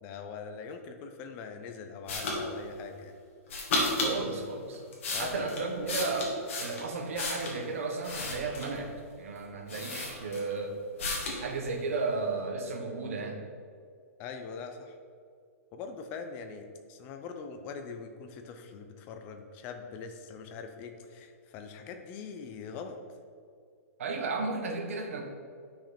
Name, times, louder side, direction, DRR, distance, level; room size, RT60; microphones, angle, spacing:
voice 1, 0.0-3.2 5.1-5.5 14.2-15.0 15.7-23.0, left 5 dB, 20° left, 6 dB, 0.7 m, -42 dB
sound 1, 2.1-2.4 3.5-4.2 4.7-7.6 8.0-8.8 9.4-9.5 9.7-10.6 11.0-11.4, left 2 dB, 55° left, 2.3 m, -33 dB
voice 2, 4.0-4.8 5.1-8.9 9.2-10.8 11.4-13.5 24.0-25.2, right 3 dB, 60° right, 2 dB, 1.5 m, -34 dB
9.8 x 6.1 x 4.4 m, 2.3 s
hypercardioid pair, 170°, 8 cm